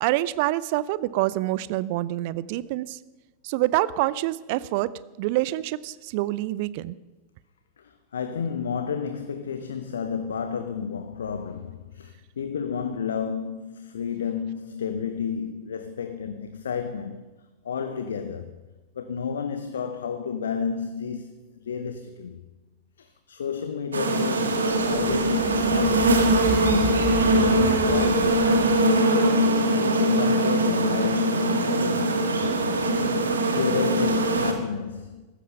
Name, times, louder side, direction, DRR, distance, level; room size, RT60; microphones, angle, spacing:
voice 1, 0.0-3.0 3.4-4.9 5.2-7.0, right 16 dB, 50° right, 0.5 m, -26 dB
voice 2, 7.8-17.2 17.6-18.6 18.9-22.4 23.0-26.7 27.2-31.3 31.8-32.1 33.5-35.3, left 6 dB, 65° left, 0.8 m, -31 dB
sound 1, 23.9-34.5, right 1 dB, 75° right, 1.6 m, -22 dB
sound 2, 24.7-28.9, right 2 dB, 5° right, 2.9 m, -33 dB
15.0 x 13.0 x 5.7 m
figure-of-eight pair, 90°, 0 cm